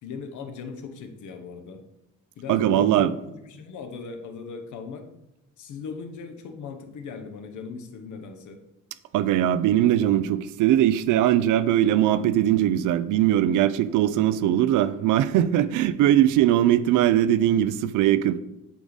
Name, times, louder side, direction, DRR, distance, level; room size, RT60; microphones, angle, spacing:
voice 1, 0.0-1.8 2.4-5.1 5.6-8.6, left 5 dB, 75° left, 1.0 m, -38 dB
voice 2, 2.5-3.1 9.1-18.4, right 12 dB, 85° right, 0.5 m, -20 dB
8.4 x 3.5 x 4.0 m
cardioid pair, 90°, 30 cm